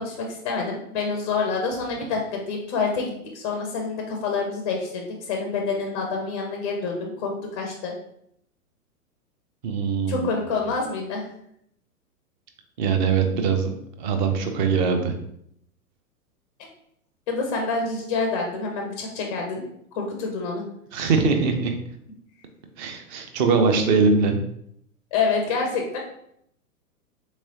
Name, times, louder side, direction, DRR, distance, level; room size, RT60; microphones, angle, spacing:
voice 1, 0.0-7.9 10.1-11.3 17.3-19.6 20.0-20.7 25.1-26.0, left 4 dB, 25° left, 2 dB, 0.4 m, -27 dB
voice 2, 9.6-10.3 12.8-13.7 14.0-15.1 20.9-21.7 22.8-24.4, right 5 dB, 30° right, 5 dB, 0.5 m, -22 dB
3.8 x 3.0 x 2.7 m, 0.72 s
hypercardioid pair, 110°, 46 cm